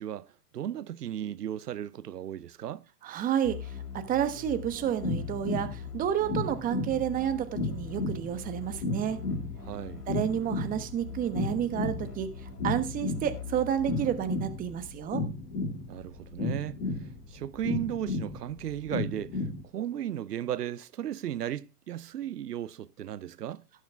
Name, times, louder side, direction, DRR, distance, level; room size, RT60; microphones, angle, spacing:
voice 1, 0.0-2.8 9.6-10.0 15.9-19.5 19.7-23.6, right 11 dB, 85° right, 0.8 m, -35 dB
voice 2, 3.0-9.2 10.1-15.2, right 10 dB, 20° right, 1.2 m, -30 dB
sound 1, 3.4-15.4, left 6 dB, 75° left, 4.0 m, -43 dB
sound 2, 4.6-19.6, left 2 dB, 30° left, 2.7 m, -34 dB
17.5 x 6.5 x 3.5 m
hypercardioid pair, 135°, 47 cm